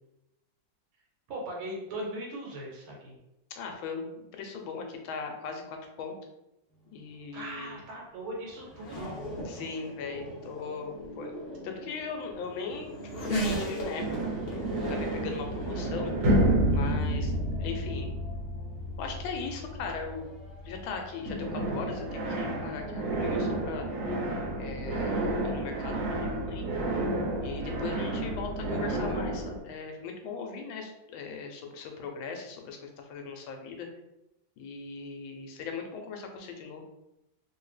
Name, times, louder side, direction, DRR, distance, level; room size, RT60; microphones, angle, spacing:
voice 1, 1.3-3.2 7.3-9.2, right 1 dB, 85° right, -2 dB, 1.8 m, -39 dB
voice 2, 3.6-6.1 6.9-7.8 9.4-11.3 11.6-12.9 13.2-14.0 14.9-16.1 16.7-17.3 17.6-18.1 19.0-20.2 20.6-23.9 24.6-26.6 27.4-33.9 34.6-36.8, left 5 dB, 80° left, 3 dB, 1.4 m, -39 dB
Race car auto racing / Accelerating revving vroom, 6.9-23.1, equal, 45° left, 0.7 m, -40 dB
sound 1, 14.0-20.9 21.2-29.6, right 1 dB, 65° right, 1.5 m, -30 dB
3.4 x 2.8 x 3.1 m, 0.90 s
omnidirectional pair, 2.2 m